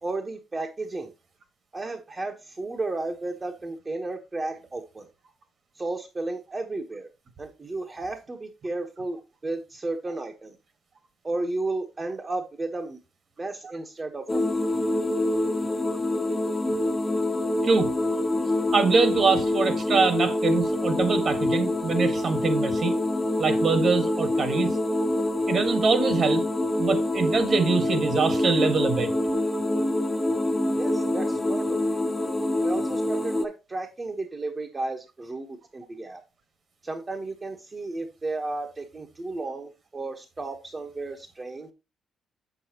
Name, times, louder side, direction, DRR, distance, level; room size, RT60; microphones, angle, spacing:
voice 1, 0.0-1.1 1.7-5.1 5.7-7.1 7.4-9.2 9.4-10.5 11.2-13.0 13.4-14.7 30.8-32.0 32.6-36.2 36.8-41.7, right 2 dB, 25° right, 1.2 m, -33 dB
sound 1, 14.3-33.5, left 1 dB, 20° left, 1.0 m, -25 dB
voice 2, 18.7-22.9 23.4-24.7 25.5-26.4 26.8-29.1, right 4 dB, 50° right, 1.7 m, -24 dB
7.7 x 7.0 x 2.9 m
cardioid pair, 90°, 0 cm